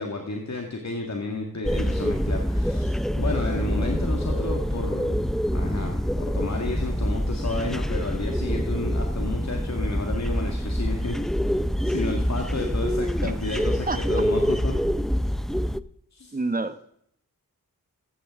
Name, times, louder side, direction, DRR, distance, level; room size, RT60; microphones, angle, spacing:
voice 1, 0.0-11.2 11.8-14.7 16.1-16.4, left 3 dB, 50° left, 2 dB, 1.8 m, -32 dB
sound 1, 1.6-15.8, equal, ahead, 0.5 m, -26 dB
voice 2, 13.9-14.2 15.7-15.8 16.3-16.8, right 3 dB, 25° right, 10 dB, 1.0 m, -29 dB
14.5 x 8.4 x 3.6 m, 0.72 s
cardioid pair, 45°, 36 cm